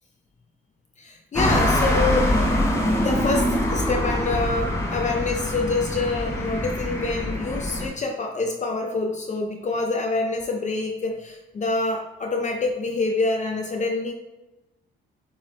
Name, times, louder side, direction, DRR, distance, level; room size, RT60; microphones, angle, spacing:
voice 1, 1.0-2.3 3.0-14.1, left 3 dB, 35° left, 2 dB, 0.6 m, -26 dB
sound 1, 1.3-7.9, left 1 dB, 15° left, 1.0 m, -24 dB
7.4 x 3.2 x 2.2 m, 0.99 s
cardioid pair, 90°, 20 cm